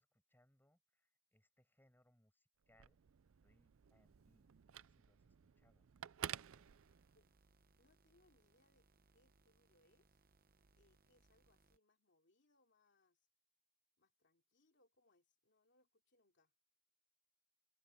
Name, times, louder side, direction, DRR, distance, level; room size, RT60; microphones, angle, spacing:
voice 1, 0.0-3.0 3.4-5.9 6.3-6.7, left 1 dB, 10° left, 6.0 m, -76 dB
Telephone, 2.6-7.4, right 9 dB, 60° right, 0.4 m, -52 dB
sound 1, 6.4-11.8, right 3 dB, 40° right, 0.9 m, -74 dB
voice 2, 7.8-8.9 9.1-10.2 10.7-13.3 14.0-16.5, left 2 dB, 50° left, 3.0 m, -77 dB
open air
head